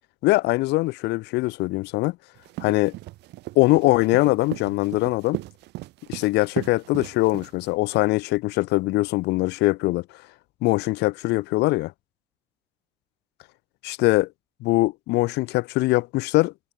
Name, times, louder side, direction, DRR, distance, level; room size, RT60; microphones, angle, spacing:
voice 1, 0.2-2.2 2.6-2.9 3.6-5.4 6.1-10.0 10.6-11.9 13.8-14.3 14.6-16.5, left 20 dB, 85° left, 0.7 m, -22 dB
sound 1, 2.4-7.8, right 18 dB, 85° right, 1.9 m, -36 dB
cardioid pair, 110°, 17 cm